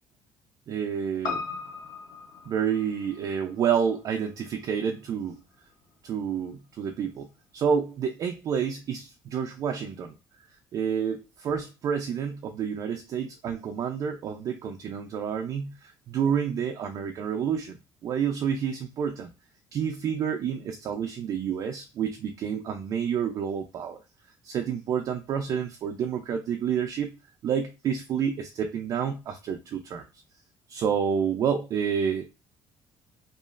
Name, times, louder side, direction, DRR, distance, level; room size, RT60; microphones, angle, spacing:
voice 1, 0.7-1.4 2.5-5.4 6.0-10.2 10.7-17.8 18.0-19.3 19.7-24.0 24.4-27.1 27.4-30.0 30.7-32.3, right 7 dB, 40° right, 0.3 m, -29 dB
Piano, 1.2-5.8 6.0-6.1, left 5 dB, 45° left, 0.7 m, -39 dB
2.8 x 2.4 x 2.4 m
cardioid pair, 160°, 9 cm